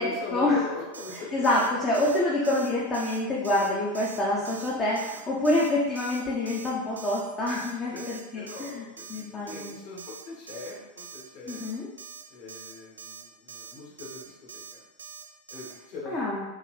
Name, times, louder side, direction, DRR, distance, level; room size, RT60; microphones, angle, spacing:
voice 1, 0.0-1.5 7.9-11.7 12.3-14.8 15.5-16.3, left 2 dB, 45° left, -4 dB, 1.2 m, -40 dB
Alarm, 0.9-1.2 1.4-1.7 1.9-2.2 2.4-2.7 2.9-3.2 3.4-3.7 3.9-4.2 4.4-4.7 5.0-5.2 5.4-5.7 5.9-6.2 6.5-6.7 7.0-7.2 7.5-7.7 8.0-8.2 8.5-8.7 9.0-9.2 9.5-9.7 10.0-10.2 10.5-10.7 11.0-11.2 11.5-11.7 12.0-12.2 12.5-12.7 13.0-13.2 13.5-13.7 14.0-14.2 14.5-14.7 15.0-15.2 15.5-15.7, right 6 dB, 70° right, 0.3 m, -43 dB
voice 2, 1.1-8.8 9.1-9.8 11.5-11.9 16.1-16.4, left 1 dB, 25° left, -5 dB, 0.7 m, -27 dB
3.6 x 2.5 x 3.2 m, 1.0 s
figure-of-eight pair, 90°, 0 cm